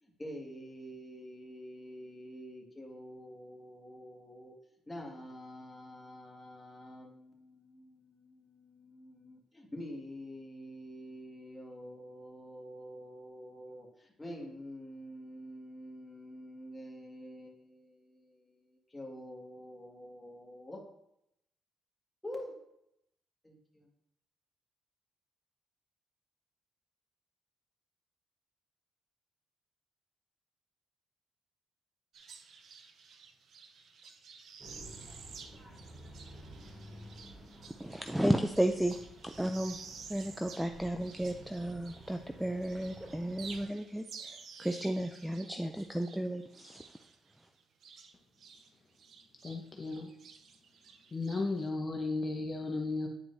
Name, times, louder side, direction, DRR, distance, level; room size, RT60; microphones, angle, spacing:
voice 1, 0.2-4.5 4.9-20.8 22.2-22.5 23.4-23.9, equal, 10° left, -1 dB, 1.8 m, -47 dB
sound 1, 32.1-42.3 42.6-48.7 49.0-51.7, right 5 dB, 65° right, 0.7 m, -52 dB
sound 2, 34.6-43.7, right 1 dB, 25° right, 2.7 m, -52 dB
voice 2, 37.8-39.0 39.2-39.8 40.1-44.0 44.6-46.8, right 1 dB, 5° right, 6 dB, 0.4 m, -33 dB
voice 3, 49.4-50.1 51.1-53.1, left 3 dB, 35° left, 1 dB, 0.9 m, -35 dB
9.6 x 4.6 x 2.7 m, 0.79 s
cardioid pair, 90°, 0 cm